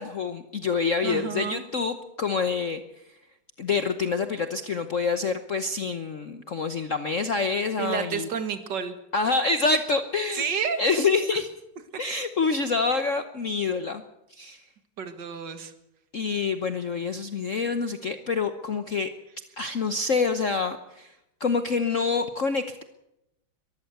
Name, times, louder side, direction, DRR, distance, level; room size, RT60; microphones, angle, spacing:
voice 1, 0.0-2.8 3.6-8.3 9.1-10.4 10.8-11.5 12.0-14.0 14.3-14.6 16.1-19.1 19.6-21.1 21.4-22.8, left 4 dB, 50° left, 9 dB, 1.1 m, -26 dB
voice 2, 1.0-1.6 7.8-9.0 10.3-10.8 15.0-15.7, right 7 dB, 55° right, 9 dB, 2.4 m, -30 dB
23.0 x 14.5 x 8.1 m, 0.85 s
omnidirectional pair, 2.3 m